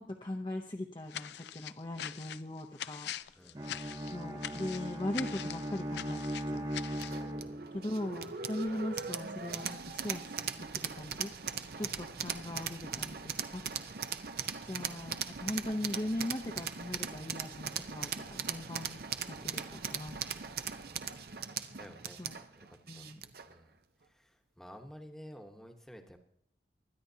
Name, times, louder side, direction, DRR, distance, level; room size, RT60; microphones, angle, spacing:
voice 1, 0.0-3.4 4.1-6.7 7.7-10.2 10.6-11.3 11.8-13.6 14.6-20.2 22.2-22.4 22.9-23.2, left 1 dB, 25° left, 2 dB, 0.7 m, -39 dB
sound 1, 1.1-7.2, left 10 dB, 75° left, 0.4 m, -43 dB
voice 2, 3.4-3.7 7.4-7.9 11.8-12.1 20.8-21.3 21.7-22.2 22.5-22.7 22.9-23.1 23.4-23.7 24.0-26.2, equal, 5° left, 4 dB, 1.1 m, -52 dB
Bowed string instrument, 3.5-8.0, equal, 25° right, 0.7 m, -39 dB
sound 2, 7.0-23.5, right 7 dB, 60° right, 0.7 m, -39 dB
23.0 x 10.5 x 2.8 m, 0.70 s
head